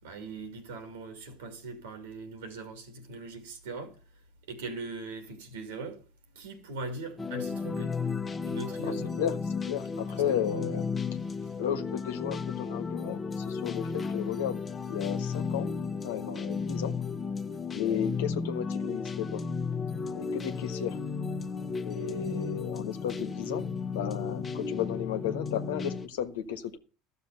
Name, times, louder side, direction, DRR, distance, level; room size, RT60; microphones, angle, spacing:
voice 1, 0.0-3.9 4.5-6.0 6.3-7.9 8.4-9.2 10.1-10.7, right 3 dB, 85° right, 3.1 m, -40 dB
sound 1, 7.2-26.1, left 5 dB, 25° left, 1.1 m, -34 dB
voice 2, 8.8-9.4 9.7-10.9 11.5-15.7 16.0-16.9 17.7-19.4 20.1-21.0 21.8-23.6 23.9-26.8, left 9 dB, 80° left, 1.3 m, -34 dB
13.0 x 6.8 x 6.8 m
hypercardioid pair, 85°, 0 cm